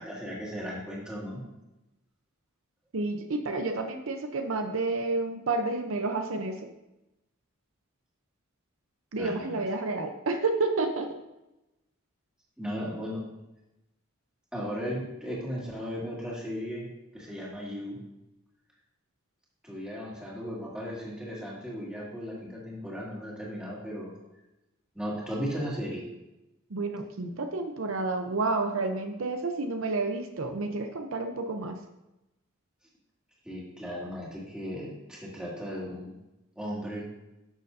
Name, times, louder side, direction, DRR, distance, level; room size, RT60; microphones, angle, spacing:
voice 1, 0.0-1.4 9.1-9.6 12.6-13.2 14.5-18.0 19.6-24.1 24.9-26.0 33.4-36.1 36.6-37.0, equal, 5° right, -5 dB, 2.1 m, -36 dB
voice 2, 2.9-6.6 9.1-11.1 26.7-31.8, right 3 dB, 70° right, 5 dB, 0.7 m, -30 dB
11.0 x 6.7 x 2.7 m, 0.96 s
head